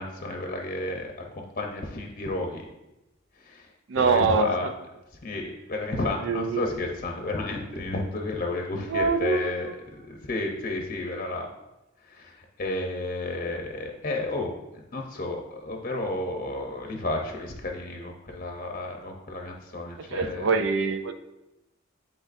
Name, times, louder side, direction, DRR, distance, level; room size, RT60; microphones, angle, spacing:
voice 1, 0.0-2.6 3.3-4.7 5.2-11.5 12.0-20.5, left 2 dB, 40° left, 2 dB, 0.8 m, -32 dB
voice 2, 3.9-4.5 6.2-6.6 8.9-9.5 20.1-21.1, right 4 dB, 65° right, 8 dB, 0.4 m, -24 dB
10.5 x 3.6 x 2.6 m, 0.96 s
head